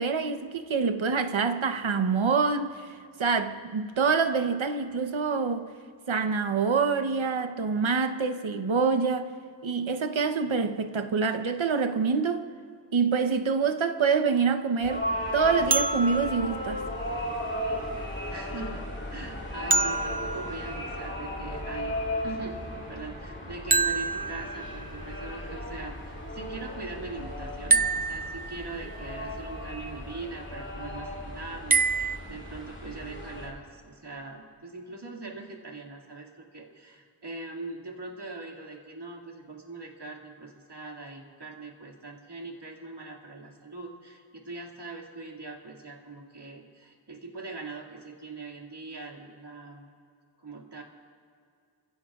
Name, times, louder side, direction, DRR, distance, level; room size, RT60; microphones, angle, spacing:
voice 1, 0.0-2.9 3.2-5.7 6.1-9.3 9.6-12.5 12.9-15.0 15.3-16.8, right 5 dB, 80° right, 1.0 m, -26 dB
sound 1, 14.8-33.5, left 1 dB, 25° left, 4.7 m, -36 dB
sound 2, 15.7-17.7 19.7-21.5 23.7-25.1 27.7-29.0 31.7-32.2, right 4 dB, 20° right, 0.3 m, -28 dB
voice 2, 17.9-18.8 19.1-22.0 22.2-22.6 22.9-25.9 26.3-49.9 50.4-50.8, right 3 dB, 60° right, 2.3 m, -41 dB
28.0 x 16.0 x 2.4 m
wide cardioid pair, 60°, 46 cm